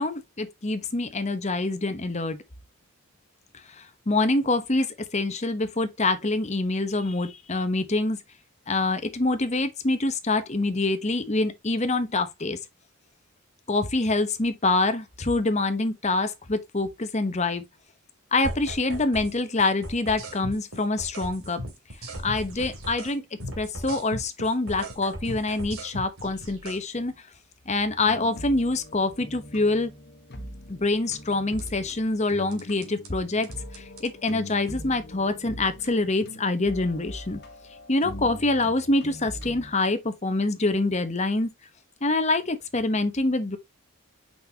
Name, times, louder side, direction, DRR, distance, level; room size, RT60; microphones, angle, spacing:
voice 1, 0.0-2.4 3.7-8.2 8.7-12.6 13.7-17.6 18.3-21.6 22.2-23.2 23.6-27.1 27.7-29.9 30.7-33.5 33.7-37.4 37.9-41.5 42.0-43.6, left 2 dB, 30° left, 1.0 m, -25 dB
sound 1, 18.4-19.3 19.6-23.2 23.4-26.8 31.6-32.0 32.5-33.1 33.4-34.1, equal, 70° right, 2.7 m, -37 dB
sound 2, 28.0-39.7, left 1 dB, 45° left, 1.4 m, -42 dB
5.9 x 5.4 x 2.9 m
head